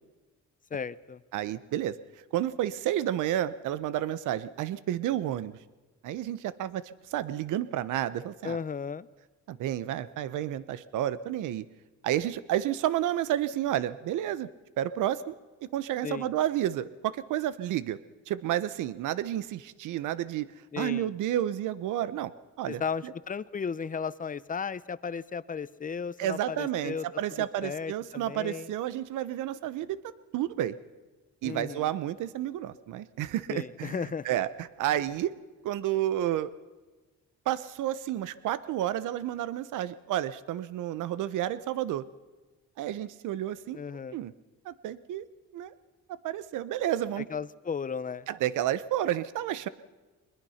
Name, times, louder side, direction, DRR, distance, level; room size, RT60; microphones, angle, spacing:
voice 1, 0.7-1.2 8.4-9.1 16.0-16.3 20.7-21.1 22.7-27.1 27.4-28.7 31.4-31.9 33.5-34.3 43.7-44.2 47.2-48.3, left 6 dB, 25° left, 17 dB, 0.7 m, -35 dB
voice 2, 1.3-2.0 2.3-5.6 6.0-8.6 9.5-11.6 12.0-14.5 14.8-18.0 18.3-20.5 20.8-22.3 22.6-23.1 26.2-30.0 30.3-30.8 31.4-33.9 34.2-35.3 35.6-36.5 37.5-42.1 42.8-43.8 44.1-44.3 44.6-45.2 45.5-45.7 46.2-47.3 48.3-49.7, right 12 dB, 85° right, 15 dB, 1.0 m, -31 dB
22.5 x 21.0 x 5.8 m, 1.2 s
cardioid pair, 90°, 30 cm